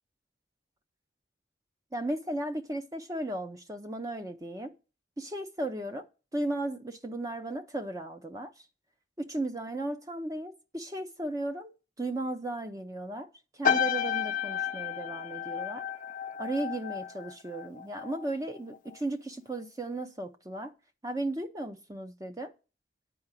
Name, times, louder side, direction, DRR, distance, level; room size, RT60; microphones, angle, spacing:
voice 1, 1.9-4.7 5.2-6.1 6.3-8.6 9.2-11.7 12.0-15.9 16.4-20.7 21.0-22.5, right 1 dB, 20° right, 0.6 m, -35 dB
sound 1, 13.6-18.3 18.5-18.9, left 8 dB, 45° left, 0.5 m, -32 dB
9.2 x 4.8 x 7.5 m
head